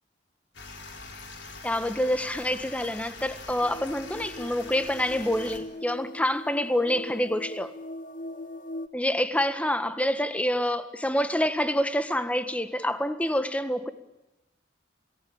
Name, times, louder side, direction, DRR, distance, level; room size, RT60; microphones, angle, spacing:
sound 1, 0.5-5.6, left 3 dB, 75° left, 4.1 m, -43 dB
voice 1, 1.6-7.7 8.9-13.9, left 1 dB, 10° left, 10 dB, 1.6 m, -27 dB
sound 2, 3.6-8.9, left 1 dB, 45° left, 1.1 m, -41 dB
28.5 x 18.5 x 8.8 m, 0.94 s
head